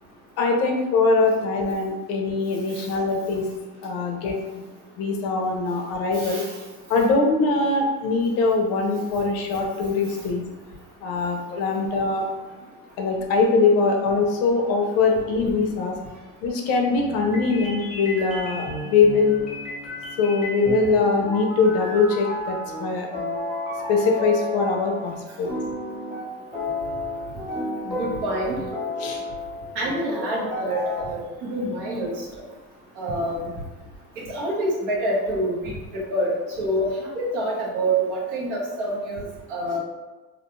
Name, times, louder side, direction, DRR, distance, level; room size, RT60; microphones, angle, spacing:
voice 1, 0.4-3.4 3.8-4.7 5.0-6.4 6.9-10.4 11.0-12.2 13.0-15.9 16.4-19.4 20.2-23.1 23.9-25.5 29.0-29.2, left 4 dB, 45° left, 2 dB, 0.4 m, -22 dB
voice 2, 6.1-6.6 27.8-28.6 29.7-32.2 33.0-33.5 34.2-39.8, right 1 dB, 85° right, -4 dB, 1.0 m, -27 dB
sound 1, 16.9-25.2 25.4-31.0, left 1 dB, ahead, 0.8 m, -32 dB
2.4 x 2.2 x 2.9 m, 1.2 s
cardioid pair, 160°, 35 cm